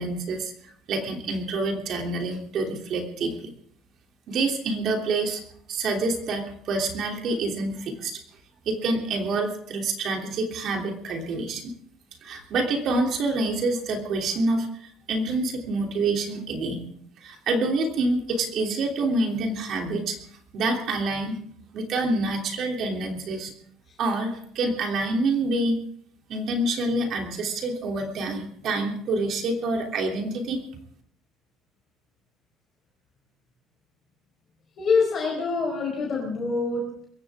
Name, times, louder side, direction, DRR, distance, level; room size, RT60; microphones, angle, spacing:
voice 1, 0.0-3.5 4.3-5.4 5.7-8.2 8.6-11.6 12.2-16.9 17.2-20.2 20.5-21.4 21.7-23.5 24.0-25.8 26.3-30.6, right 2 dB, 50° right, 2 dB, 3.2 m, -27 dB
voice 2, 34.8-36.9, left 4 dB, 35° left, -1 dB, 5.0 m, -25 dB
22.5 x 15.5 x 3.7 m, 0.65 s
cardioid pair, 140°, 0 cm